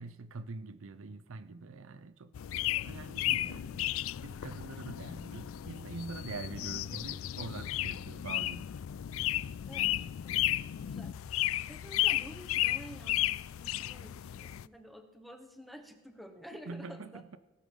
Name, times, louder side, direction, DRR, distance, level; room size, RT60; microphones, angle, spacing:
voice 1, 0.0-3.9 4.2-8.7 16.5-17.4, right 4 dB, 65° right, 0.6 m, -44 dB
sound 1, 2.3-14.7, left 14 dB, 70° left, 0.3 m, -34 dB
voice 2, 10.8-11.2 11.7-17.2, equal, ahead, 1.1 m, -50 dB
17.5 x 8.4 x 5.4 m
head